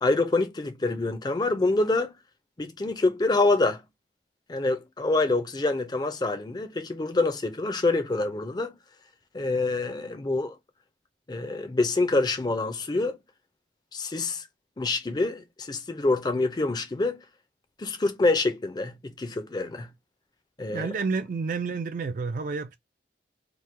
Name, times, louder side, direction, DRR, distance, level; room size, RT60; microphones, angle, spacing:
voice 1, 0.0-2.1 2.6-3.8 4.5-8.7 9.3-10.6 11.3-13.2 13.9-14.4 14.8-17.2 17.8-19.9 20.6-20.9, left 2 dB, 25° left, 0.5 m, -26 dB
voice 2, 20.7-22.8, right 4 dB, 50° right, 0.3 m, -30 dB
3.0 x 2.1 x 3.3 m
head